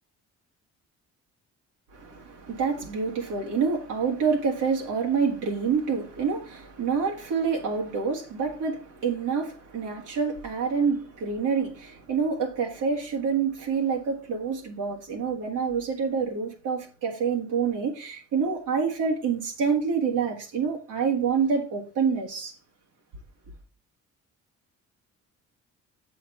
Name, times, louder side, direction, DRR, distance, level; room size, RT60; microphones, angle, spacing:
voice 1, 1.9-22.5, right 5 dB, 80° right, 2.0 m, -27 dB
7.4 x 5.8 x 4.2 m
cardioid pair, 90°, 30 cm